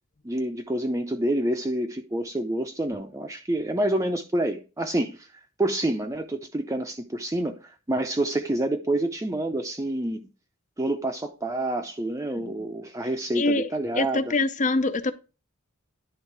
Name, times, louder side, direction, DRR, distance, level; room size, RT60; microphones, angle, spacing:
voice 1, 0.2-5.3 5.6-10.2 10.8-14.3, right 1 dB, 15° right, 0.6 m, -28 dB
voice 2, 13.3-13.7 13.9-15.1, left 2 dB, 35° left, 0.6 m, -24 dB
11.0 x 3.6 x 4.7 m
head